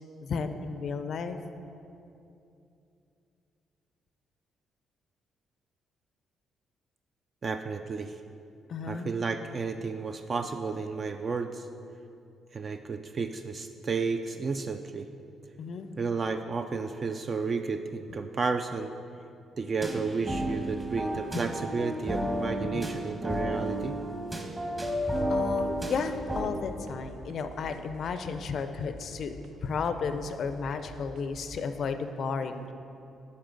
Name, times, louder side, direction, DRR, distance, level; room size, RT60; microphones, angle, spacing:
voice 1, 0.2-1.4 8.7-9.1 15.6-15.9 21.3-21.4 22.7-22.8 25.3-29.3 29.6-32.7, left 5 dB, 60° left, 9 dB, 0.4 m, -33 dB
voice 2, 7.4-8.2 8.9-11.7 12.5-15.1 16.0-18.9 19.6-24.0, right 4 dB, 40° right, 7 dB, 0.3 m, -32 dB
sound 1, 19.8-26.4, right 1 dB, 25° right, 1.1 m, -32 dB
sound 2, 24.7-31.5, right 1 dB, 85° right, 0.7 m, -49 dB
9.9 x 5.4 x 3.9 m, 2.7 s
cardioid pair, 90°, 0 cm